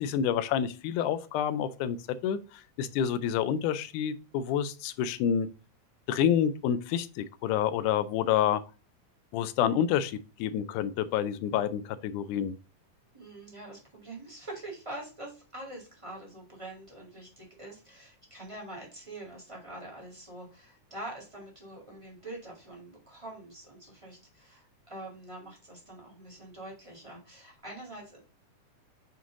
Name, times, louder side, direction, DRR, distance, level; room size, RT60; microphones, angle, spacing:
voice 1, 0.0-2.0 2.2-2.4 2.8-5.5 6.1-8.6 9.3-12.5, left 9 dB, 80° left, 2.0 m, -28 dB
voice 2, 13.1-28.2, right 1 dB, 15° right, 1.4 m, -45 dB
8.2 x 3.1 x 3.7 m
omnidirectional pair, 3.7 m